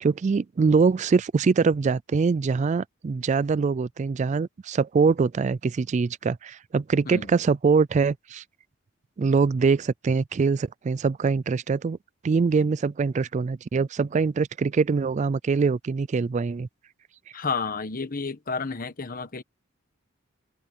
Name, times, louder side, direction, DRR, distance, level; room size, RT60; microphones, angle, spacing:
voice 1, 0.0-8.4 9.2-12.0 12.2-16.7, right 5 dB, 35° right, 0.3 m, -23 dB
voice 2, 17.3-19.4, left 4 dB, 45° left, 1.2 m, -31 dB
head